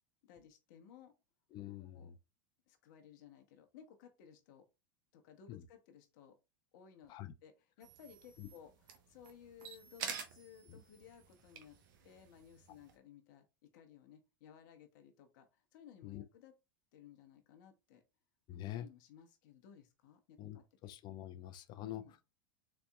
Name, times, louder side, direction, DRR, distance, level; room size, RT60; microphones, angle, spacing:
voice 1, 0.2-1.2 1.8-2.1 2.7-4.7 5.1-6.4 6.7-7.1 7.4-8.7 9.1-11.8 12.0-16.5 16.9-18.0 18.5-20.6 21.8-22.1, left 8 dB, 60° left, 0.9 m, -59 dB
voice 2, 1.5-2.2 5.5-5.7 7.1-7.3 8.4-8.5 10.7-10.8 16.0-16.2 18.5-18.9 20.4-22.0, left 13 dB, 40° left, 0.6 m, -46 dB
sound 1, 7.8-12.9, right 7 dB, 65° right, 0.9 m, -49 dB
4.0 x 3.4 x 2.2 m
hypercardioid pair, 90°, 11 cm